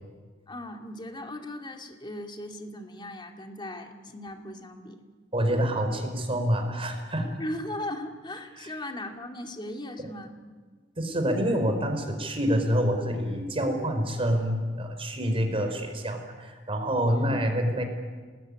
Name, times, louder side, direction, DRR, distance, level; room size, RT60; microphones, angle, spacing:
voice 1, 0.5-5.0 7.4-10.3 17.1-17.4, left 1 dB, 25° left, 4 dB, 2.5 m, -38 dB
voice 2, 5.3-7.4 8.6-8.7 11.0-17.8, equal, 30° right, 5 dB, 4.7 m, -27 dB
28.0 x 20.5 x 9.9 m, 1.5 s
head